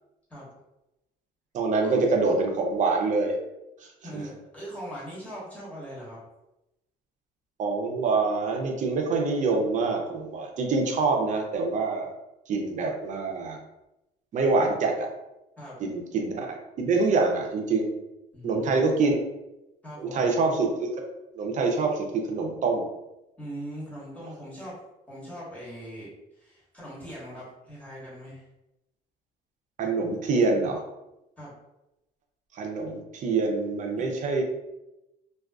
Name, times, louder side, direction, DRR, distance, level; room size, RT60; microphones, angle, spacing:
voice 1, 1.5-3.3 7.6-12.1 12.5-13.6 14.3-15.1 15.8-17.9 18.4-19.2 20.0-20.9 21.3-22.9 29.8-30.8 32.5-34.4, right 3 dB, 45° right, 2 dB, 0.5 m, -25 dB
voice 2, 4.0-6.2 15.6-15.7 18.3-19.0 19.8-20.3 23.4-24.8 25.1-28.4 31.4-31.5 34.0-34.1, equal, 10° left, -8 dB, 1.3 m, -41 dB
2.3 x 2.3 x 2.3 m, 0.93 s
cardioid pair, 110°, 17 cm